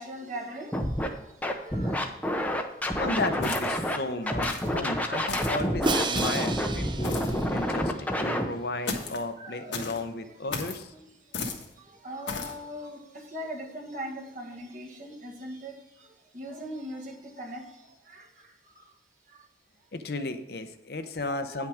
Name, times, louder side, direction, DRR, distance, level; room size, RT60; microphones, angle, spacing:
voice 1, 0.0-2.2 2.8-3.0 4.2-5.1 6.1-6.3 6.7-7.2 7.8-7.9 9.4-10.0 10.3-10.6 10.9-18.9 19.3-19.5 21.0-21.7, equal, 45° right, 0 dB, 1.7 m, -42 dB
Scratching (performance technique), 0.7-1.1 1.4-4.0 4.3-8.4, equal, 10° left, 0.7 m, -28 dB
voice 2, 3.0-10.9 19.9-21.7, left 2 dB, 60° left, 8 dB, 0.8 m, -34 dB
sound 1, 3.4-3.9 4.4-4.7 5.3-5.6 6.1-6.5 7.0-7.4 8.9-9.2 9.7-10.0 10.5-10.8 11.3-11.7 12.3-12.6, left 4 dB, 85° left, 1.5 m, -35 dB
Crash cymbal, 5.8-8.0, right 3 dB, 25° right, 0.6 m, -32 dB
9.3 x 5.9 x 5.0 m, 0.90 s
head